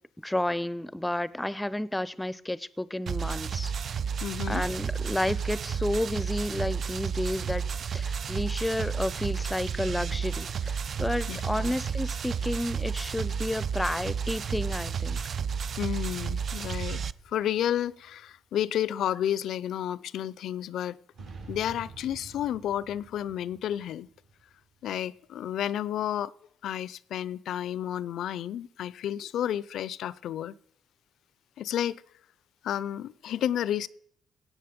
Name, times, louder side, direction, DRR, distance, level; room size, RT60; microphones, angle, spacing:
voice 1, 0.2-3.7 4.5-7.6 7.9-15.2, left 1 dB, 10° left, 0.5 m, -31 dB
sound 1, 3.1-17.1, right 6 dB, 50° right, 0.4 m, -32 dB
voice 2, 4.2-4.6 11.3-11.8 15.8-21.0 21.5-24.1 24.8-26.3 26.6-30.5 31.6-32.0 32.6-33.9, left 11 dB, 75° left, 0.4 m, -31 dB
sound 2, 14.5-18.2 21.1-24.9, right 3 dB, 70° right, 5.7 m, -48 dB
17.0 x 7.5 x 5.2 m
cardioid pair, 90°, 0 cm